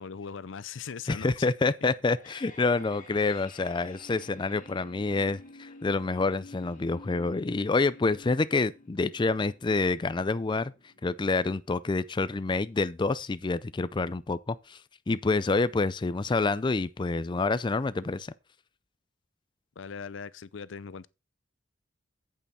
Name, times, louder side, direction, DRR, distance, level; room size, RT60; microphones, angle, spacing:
voice 1, 0.0-1.5 1.8-1.9 19.8-21.1, left 6 dB, 75° left, 0.5 m, -40 dB
voice 2, 1.1-10.7 11.0-14.8 15.1-18.3, left 3 dB, 25° left, 0.4 m, -27 dB
sound 1, 1.9-12.9, left 3 dB, 45° left, 2.2 m, -51 dB
8.8 x 8.5 x 4.2 m
head